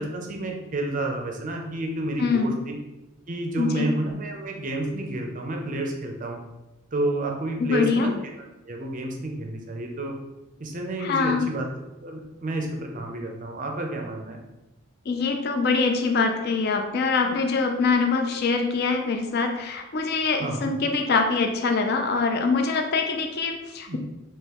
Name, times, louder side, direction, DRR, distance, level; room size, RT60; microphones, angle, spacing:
voice 1, 0.0-2.7 3.3-6.4 6.9-8.1 8.7-10.1 10.6-11.7 12.0-14.4 20.4-20.7 23.9-24.0, right 2 dB, 35° right, 2 dB, 0.5 m, -30 dB
voice 2, 2.2-2.6 3.6-3.9 7.6-8.1 11.0-11.5 15.1-24.0, left 4 dB, 45° left, 4 dB, 0.4 m, -24 dB
3.7 x 3.0 x 2.9 m, 1.0 s
head